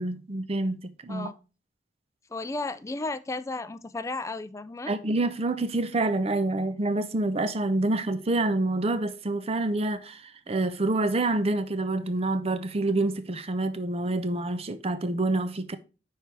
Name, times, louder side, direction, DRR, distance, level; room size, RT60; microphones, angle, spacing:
voice 1, 0.0-1.3 4.9-15.8, right 2 dB, 35° right, 0.6 m, -27 dB
voice 2, 2.3-4.9, left 3 dB, 15° left, 0.4 m, -34 dB
9.4 x 4.7 x 3.3 m
head